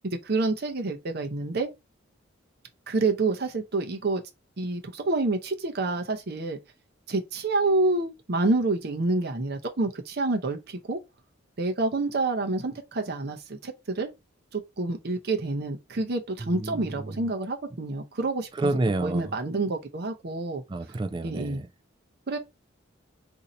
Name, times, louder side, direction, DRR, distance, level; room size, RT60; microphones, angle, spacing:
voice 1, 0.0-1.7 2.9-4.2 4.6-6.6 7.1-11.0 11.6-14.1 14.5-20.6 21.2-21.6 22.3-22.4, right 2 dB, 55° right, 0.7 m, -28 dB
voice 2, 16.5-16.9 18.6-19.3 20.7-21.7, right 2 dB, 25° right, 0.3 m, -28 dB
2.7 x 2.6 x 4.1 m
head